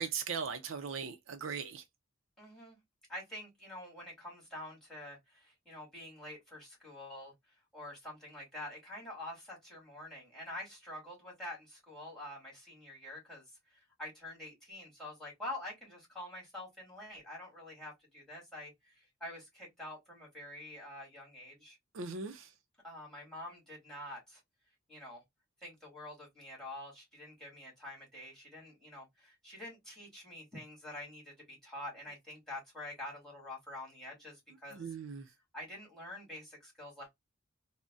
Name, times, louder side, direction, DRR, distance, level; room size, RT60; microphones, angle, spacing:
voice 1, 0.0-1.8 21.9-22.5 34.7-35.3, right 6 dB, 65° right, 0.5 m, -39 dB
voice 2, 2.4-2.8 3.1-7.3 7.7-13.4 13.7-21.8 22.8-24.4 24.9-25.2 25.6-34.9 35.3-37.1, left 1 dB, ahead, 2.0 m, -47 dB
3.8 x 2.1 x 2.3 m
head